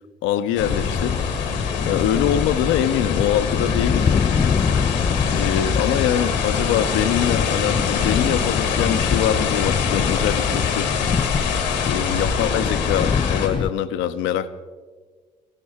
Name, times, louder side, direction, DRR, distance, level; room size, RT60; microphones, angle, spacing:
voice 1, 0.2-1.2 1.9-4.3 5.3-10.9 11.9-14.5, left 10 dB, 65° left, 0.8 m, -23 dB
sound 1, 0.6-13.5, left 6 dB, 85° left, 1.9 m, -25 dB
Thunder, 0.6-13.7, left 6 dB, 25° left, 0.4 m, -24 dB
23.0 x 16.0 x 3.6 m
figure-of-eight pair, 50°, 21 cm